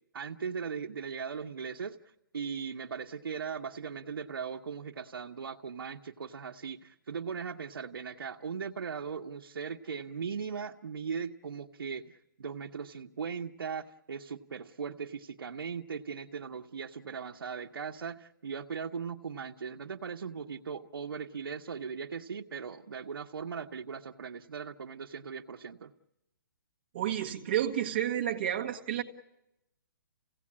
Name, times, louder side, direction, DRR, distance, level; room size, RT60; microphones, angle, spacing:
voice 1, 0.1-2.0 2.3-25.9, right 6 dB, 80° right, 1 dB, 1.1 m, -39 dB
voice 2, 26.9-29.0, right 11 dB, 30° right, 3 dB, 1.6 m, -30 dB
28.5 x 17.0 x 8.7 m, 0.93 s
hypercardioid pair, 175°, 12 cm